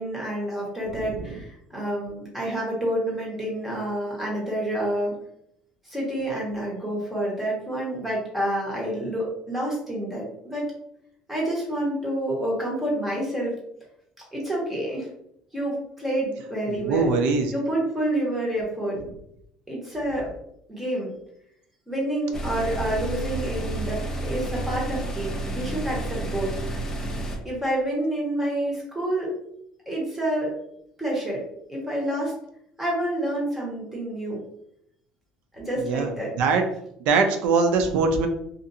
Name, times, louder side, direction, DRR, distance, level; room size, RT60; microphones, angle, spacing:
voice 1, 0.0-5.1 5.8-10.6 11.3-13.6 14.3-15.1 15.5-17.1 17.5-19.0 19.7-20.3 20.7-21.1 21.9-26.5 27.4-29.3 29.9-30.5 31.0-31.4 31.7-32.3 32.8-34.4 35.5-36.3, right 1 dB, 10° right, -4 dB, 1.2 m, -28 dB
voice 2, 1.1-1.4 16.7-17.5 35.8-36.6 37.1-38.3, right 4 dB, 75° right, 6 dB, 0.5 m, -22 dB
sound 1, 22.3-27.4, right 2 dB, 20° left, 0.6 m, -30 dB
2.5 x 2.5 x 2.7 m, 0.74 s
supercardioid pair, 105°, 2 cm